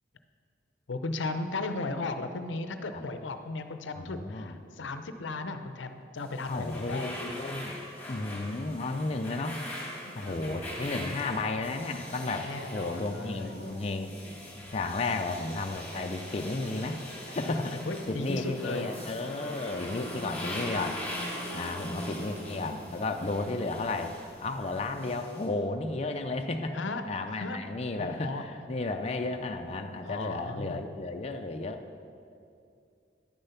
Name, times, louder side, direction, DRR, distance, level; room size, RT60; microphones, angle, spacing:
voice 1, 0.9-7.1 10.1-10.5 12.4-13.6 17.6-19.1 26.7-27.0 27.4-27.6 28.0-28.4 30.0-30.8, left 3 dB, 90° left, 9 dB, 0.6 m, -36 dB
voice 2, 4.0-4.5 6.5-7.8 8.1-9.6 10.2-14.1 14.7-17.0 17.2-17.8 18.1-21.0 21.5-24.1 24.4-26.8 27.1-31.8, left 2 dB, 35° left, 5 dB, 0.5 m, -33 dB
sound 1, 6.2-25.5, left 1 dB, 10° left, 2.0 m, -42 dB
sound 2, 10.2-24.4 24.6-24.8, right 1 dB, 40° right, 0.7 m, -51 dB
10.5 x 6.7 x 5.7 m, 2.5 s
head